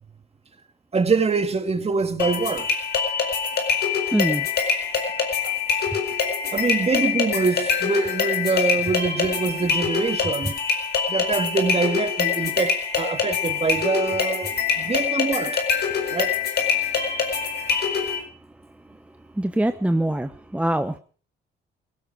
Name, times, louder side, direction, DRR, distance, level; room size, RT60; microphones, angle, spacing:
voice 1, 0.9-2.7 5.4-5.6 6.5-10.6 11.1-15.6 16.1-16.3, right 4 dB, 30° right, 2.2 m, -24 dB
sound 1, 2.2-18.2, left 6 dB, 55° left, 4.6 m, -24 dB
voice 2, 4.1-4.5 19.4-20.9, right 1 dB, 5° right, 0.9 m, -23 dB
17.0 x 16.5 x 5.0 m
cardioid pair, 90°, 20 cm